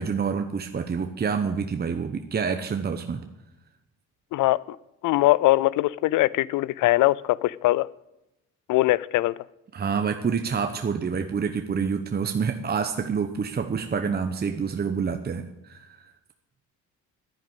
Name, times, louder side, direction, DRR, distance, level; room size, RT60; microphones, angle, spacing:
voice 1, 0.0-3.2 9.7-16.1, right 6 dB, 30° right, 7 dB, 1.0 m, -27 dB
voice 2, 5.0-7.9 8.7-9.3, left 17 dB, 85° left, 22 dB, 0.5 m, -21 dB
10.5 x 10.5 x 8.1 m, 0.90 s
cardioid pair, 90°, 30 cm